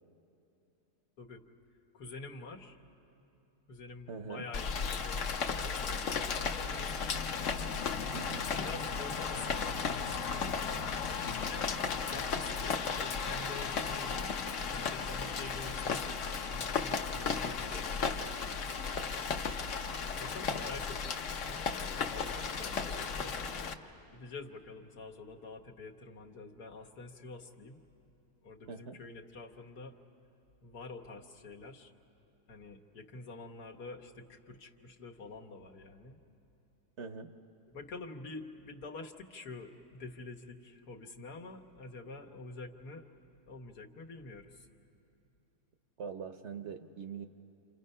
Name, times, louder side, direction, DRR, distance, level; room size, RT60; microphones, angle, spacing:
voice 1, 1.9-2.8 3.7-7.0 8.2-10.9 11.5-11.7 12.1-14.3 14.7-16.1 16.4-18.7 20.2-21.6 22.1-23.4 24.1-27.8 28.4-30.0 30.6-31.9 32.5-36.2 37.7-43.1 43.5-44.7, left 3 dB, 75° left, 1 dB, 1.8 m, -47 dB
voice 2, 4.1-4.5 8.1-8.5 28.7-29.0 37.0-37.3 46.0-47.2, right 5 dB, 55° right, 7 dB, 0.9 m, -42 dB
Rain, 4.5-23.7, left 5 dB, 55° left, 1.1 m, -35 dB
29.5 x 28.0 x 5.5 m, 2.9 s
omnidirectional pair, 1.7 m